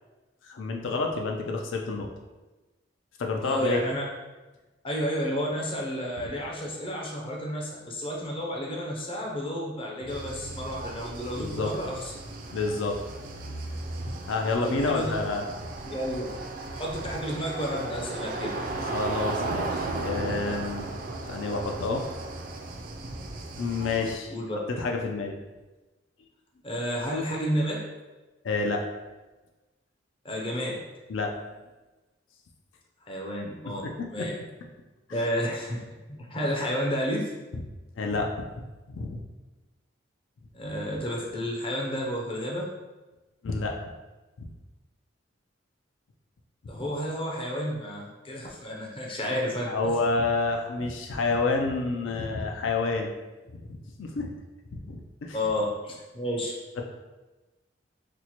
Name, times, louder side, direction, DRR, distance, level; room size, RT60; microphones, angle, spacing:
voice 1, 0.4-2.1 3.2-3.8 6.2-6.3 11.4-11.7 12.5-13.0 14.2-15.4 18.8-20.9 21.3-22.0 23.6-24.3 24.7-25.4 28.4-28.8 31.1-31.3 33.6-34.4 35.1-35.2 37.5-37.6 38.0-39.2 43.4-43.7 44.4-44.5 49.7-53.1 53.5-54.3 54.7-55.4 56.8-56.9, left 3 dB, 80° left, 2 dB, 0.4 m, -29 dB
voice 2, 3.4-4.0 4.8-12.1 14.6-15.2 15.8-16.3 16.7-18.6 24.3-24.6 26.6-27.8 30.2-30.8 33.1-33.8 34.1-34.3 35.1-35.8 36.1-37.3 40.5-42.7 46.7-49.7 55.3-56.5, equal, 30° left, -2 dB, 0.5 m, -31 dB
sound 1, 10.1-24.2, right 2 dB, 45° right, 0.3 m, -35 dB
4.3 x 2.1 x 2.8 m, 1.2 s
head